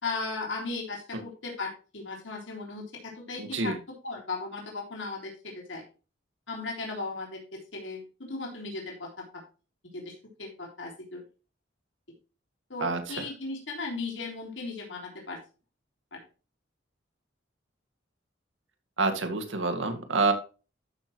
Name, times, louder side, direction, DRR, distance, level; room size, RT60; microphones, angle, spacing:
voice 1, 0.0-3.7 4.0-5.8 6.5-7.4 7.7-9.1 9.9-11.2 12.7-15.4 16.1-16.2, left 3 dB, 80° left, -1 dB, 3.4 m, -36 dB
voice 2, 3.4-3.8 12.8-13.2 19.0-20.3, right 3 dB, 90° right, 7 dB, 2.0 m, -27 dB
13.5 x 6.1 x 3.1 m, 0.33 s
head